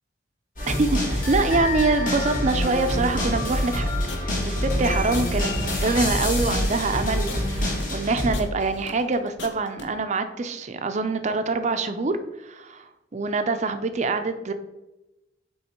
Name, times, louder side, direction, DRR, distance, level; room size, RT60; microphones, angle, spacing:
sound 1, 0.6-8.3, left 1 dB, 45° left, 1.9 m, -26 dB
voice 1, 0.7-3.9 4.2-14.5, right 3 dB, 40° right, 8 dB, 0.5 m, -25 dB
sound 2, 3.5-9.9, left 4 dB, 80° left, 0.8 m, -40 dB
7.4 x 3.1 x 4.3 m, 0.98 s
head